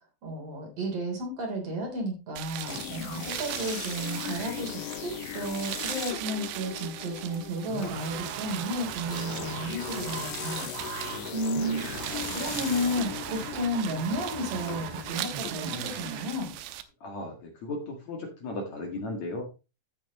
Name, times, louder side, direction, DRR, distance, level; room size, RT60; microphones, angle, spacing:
voice 1, 0.2-10.7 11.3-11.8 12.1-16.5, equal, 35° right, 0 dB, 4.3 m, -33 dB
sound 1, 2.4-16.8, right 13 dB, 90° right, 3.1 m, -39 dB
sound 2, 2.7-16.4, left 13 dB, 80° left, 2.9 m, -40 dB
sound 3, 7.7-16.4, right 7 dB, 70° right, 3.0 m, -39 dB
voice 2, 11.1-11.7 17.0-19.4, left 2 dB, 55° left, 2 dB, 2.3 m, -37 dB
15.0 x 6.3 x 3.1 m, 0.30 s
omnidirectional pair, 5.2 m